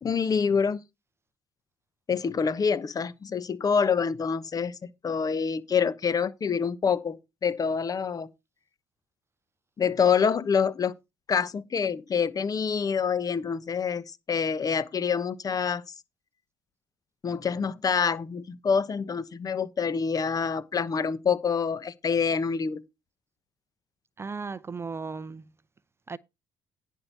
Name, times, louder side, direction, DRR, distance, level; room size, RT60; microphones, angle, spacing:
voice 1, 0.0-0.8 2.1-8.3 9.8-10.9 11.3-15.8 17.2-22.8, left 6 dB, 40° left, 1.1 m, -26 dB
voice 2, 24.2-25.4 26.1-26.2, right 4 dB, 25° right, 0.6 m, -35 dB
10.5 x 4.6 x 6.8 m
supercardioid pair, 75°, 10 cm